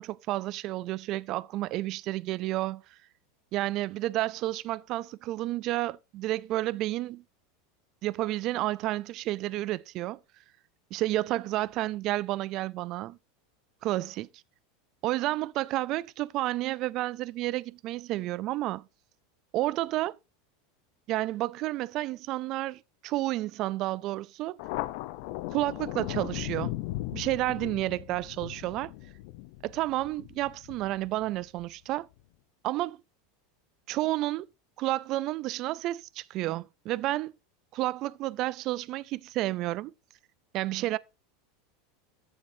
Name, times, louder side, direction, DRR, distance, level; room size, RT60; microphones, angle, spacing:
voice 1, 0.0-2.8 3.5-7.2 8.0-10.2 10.9-13.2 13.8-14.3 15.0-18.8 19.5-20.2 21.1-24.6 25.5-26.7 27.1-28.9 29.6-32.1 32.6-33.0 33.9-34.5 34.8-37.3 37.7-39.9 40.5-41.0, right 16 dB, 35° right, 0.4 m, -31 dB
Thunder, 24.6-31.6, left 17 dB, 50° left, 0.6 m, -38 dB
14.5 x 7.5 x 2.7 m
supercardioid pair, 170°, 0 cm